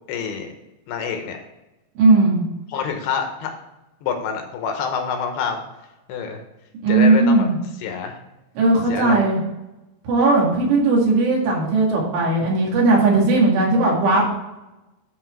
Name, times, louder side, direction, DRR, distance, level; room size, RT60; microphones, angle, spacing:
voice 1, 0.1-0.5 0.9-1.4 2.7-3.5 4.0-5.6 6.1-6.4 6.9-7.5 7.8-8.2 8.9-9.2, left 6 dB, 75° left, 4 dB, 2.7 m, -26 dB
voice 2, 2.0-2.4 6.8-7.5 8.6-9.4 10.0-14.2, right 3 dB, 70° right, -2 dB, 4.2 m, -17 dB
10.0 x 4.3 x 4.5 m, 0.98 s
omnidirectional pair, 5.2 m